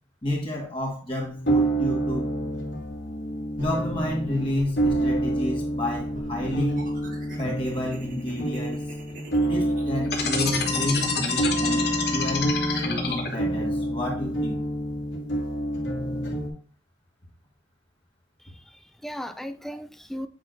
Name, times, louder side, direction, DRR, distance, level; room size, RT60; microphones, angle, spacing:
voice 1, 0.2-2.3 3.6-6.9 7.4-8.8 9.4-14.6, left 1 dB, 25° left, 1.6 m, -30 dB
sound 1, 1.2-16.5, right 1 dB, 75° left, 1.9 m, -28 dB
sound 2, 3.6-5.2 5.9-11.4, right 1 dB, 45° right, 1.3 m, -43 dB
sound 3, 10.1-13.6, left 5 dB, 55° left, 1.3 m, -27 dB
voice 2, 18.4-20.3, equal, ahead, 0.4 m, -37 dB
8.2 x 5.4 x 2.6 m
head